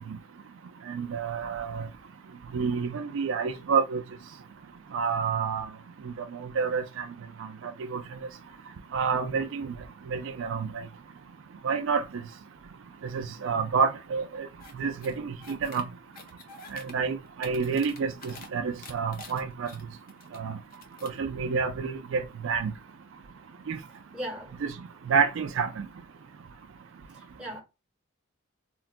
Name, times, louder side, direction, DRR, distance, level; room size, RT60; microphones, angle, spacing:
voice 1, 0.9-1.9 2.5-4.0 4.9-5.7 6.6-7.1 7.8-8.0 8.9-9.7 10.1-10.7 11.6-12.0 13.1-14.5 14.8-15.9 16.7-19.7 20.3-20.5 21.0-22.7 23.7-23.8 24.6-24.7 25.1-25.9, right 5 dB, 65° right, 0.4 m, -28 dB
sound 1, 14.6-14.7 15.0-15.8 16.1-16.9 17.3-18.5 18.8-20.4 20.7-21.2, left 3 dB, 45° left, 0.5 m, -47 dB
voice 2, 24.1-24.5 27.1-27.6, equal, 5° right, 1.0 m, -37 dB
3.8 x 2.1 x 2.4 m
head